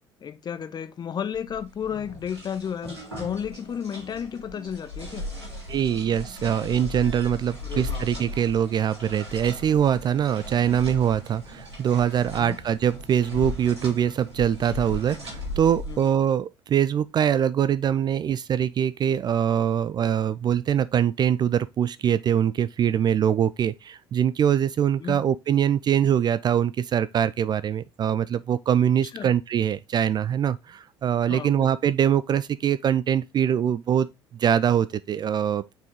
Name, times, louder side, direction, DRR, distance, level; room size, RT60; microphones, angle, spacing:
voice 1, 0.2-5.3 7.6-8.1 12.4-12.6 15.9-16.1 25.0-25.2 29.1-29.3 31.3-31.7, left 8 dB, 30° left, 0.7 m, -33 dB
sound 1, 1.3-16.1, left 1 dB, 85° right, 2.7 m, -37 dB
voice 2, 5.7-34.1 34.3-35.7, right 9 dB, 30° right, 0.3 m, -23 dB
5.7 x 4.6 x 3.6 m
figure-of-eight pair, 55°, 14 cm